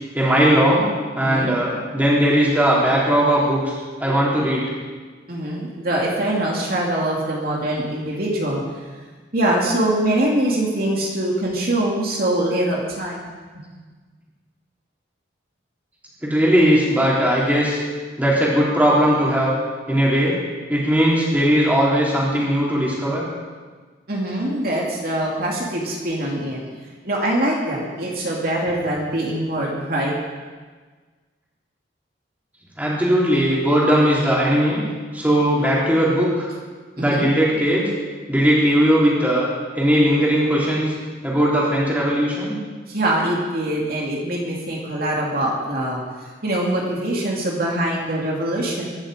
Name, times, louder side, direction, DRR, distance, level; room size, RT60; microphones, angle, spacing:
voice 1, 0.1-0.9 1.2-4.6 16.2-17.8 18.2-19.6 19.9-20.4 20.7-23.2 32.8-34.8 35.1-36.5 37.0-37.9 38.3-39.5 39.7-40.8 41.2-42.6, equal, 10° right, -5 dB, 3.9 m, -18 dB
voice 2, 1.2-1.5 5.3-8.6 9.3-13.3 13.5-13.6 24.1-26.6 27.0-30.1 37.0-37.3 42.9-48.8, right 1 dB, 50° right, -3 dB, 2.9 m, -23 dB
23.5 x 11.5 x 5.2 m, 1.4 s
head